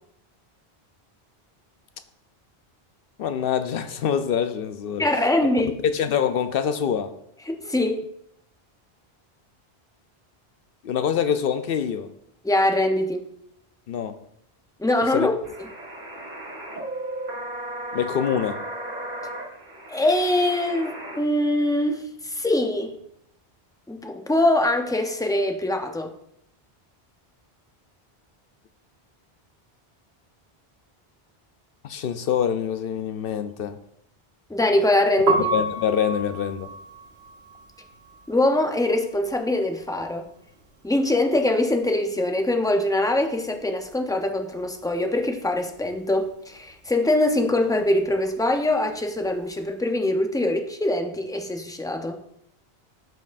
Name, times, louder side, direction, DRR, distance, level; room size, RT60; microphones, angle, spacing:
voice 1, 3.2-5.1 5.8-7.1 10.8-12.1 13.9-14.2 15.1-15.3 17.9-18.6 31.8-33.8 35.4-36.7, left 8 dB, 65° left, 10 dB, 0.7 m, -25 dB
voice 2, 5.0-5.7 7.5-8.1 12.4-13.2 14.8-15.3 19.9-22.9 23.9-26.1 34.5-35.4 38.3-40.3 40.8-52.2, left 1 dB, 5° left, 4 dB, 0.5 m, -23 dB
sound 1, 15.4-21.2, right 1 dB, 45° right, 1.6 m, -35 dB
Piano, 35.1-41.1 41.3-42.9 43.2-49.6, right 3 dB, 75° right, 1.1 m, -33 dB
13.0 x 5.3 x 2.5 m, 0.74 s
omnidirectional pair, 1.1 m